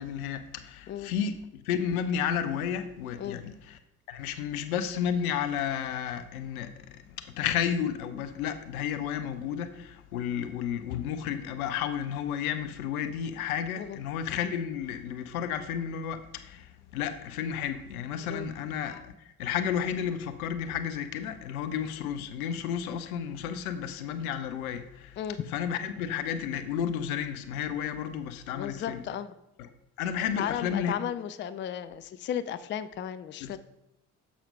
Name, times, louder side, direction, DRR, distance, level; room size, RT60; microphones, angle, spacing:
voice 1, 0.0-3.8 4.1-25.2 25.5-29.0 29.6-29.7 30.0-31.0 33.4-33.6, left 8 dB, 75° left, 0.7 m, -32 dB
voice 2, 28.5-29.3 30.4-33.6, left 10 dB, 25° left, 0.4 m, -34 dB
7.3 x 4.3 x 5.3 m
figure-of-eight pair, 50°, 44 cm